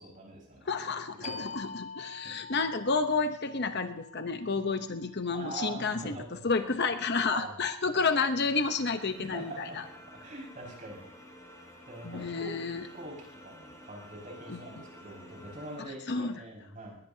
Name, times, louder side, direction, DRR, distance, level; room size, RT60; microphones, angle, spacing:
voice 1, 0.0-0.7 1.2-1.5 5.3-6.4 7.3-7.6 9.2-9.8 10.2-11.1 11.9-12.5 12.9-13.1 13.4-17.0, right 2 dB, 35° right, -1 dB, 5.9 m, -43 dB
voice 2, 0.6-9.8 12.0-12.9 14.5-14.6 15.8-16.4, left 4 dB, 50° left, 8 dB, 0.9 m, -31 dB
sound 1, 1.2-6.5, left 4 dB, 30° left, 0.6 m, -46 dB
sound 2, 8.4-15.8, equal, 15° left, 6.7 m, -51 dB
21.0 x 19.0 x 2.8 m, 0.69 s
head